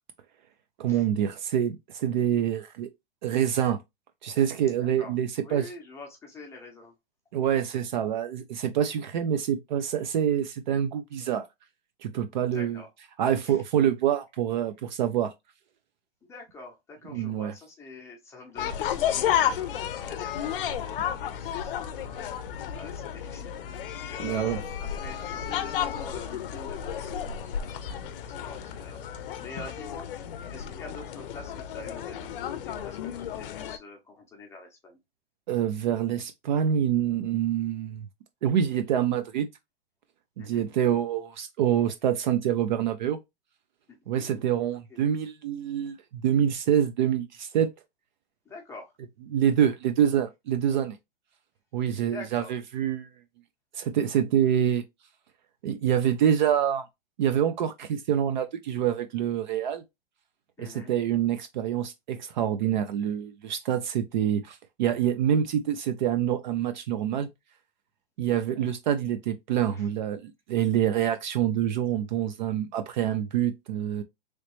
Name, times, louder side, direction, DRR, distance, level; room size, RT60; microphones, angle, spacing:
voice 1, 0.8-2.9 3.2-3.8 4.2-5.7 7.3-11.5 12.0-12.8 13.2-15.3 17.1-17.5 24.2-24.6 35.5-38.1 38.4-39.5 40.4-43.2 44.1-47.7 49.3-51.0 51.7-53.1 53.7-54.8 55.6-56.9 57.2-59.8 60.6-67.3 68.2-74.0, right 9 dB, 50° right, 0.5 m, -26 dB
voice 2, 4.8-5.1 5.4-6.9 12.5-12.9 13.4-13.6 16.2-22.3 22.7-23.6 24.1-30.1 30.5-35.0 40.4-40.7 43.9-44.6 44.9-45.0 48.4-48.9 52.1-52.5 60.6-60.9 68.5-68.7 69.7-69.9, left 3 dB, 10° left, 0.8 m, -46 dB
sound 1, 18.6-33.8, left 9 dB, 60° left, 0.6 m, -32 dB
3.1 x 3.0 x 3.0 m
hypercardioid pair, 150°, 30 cm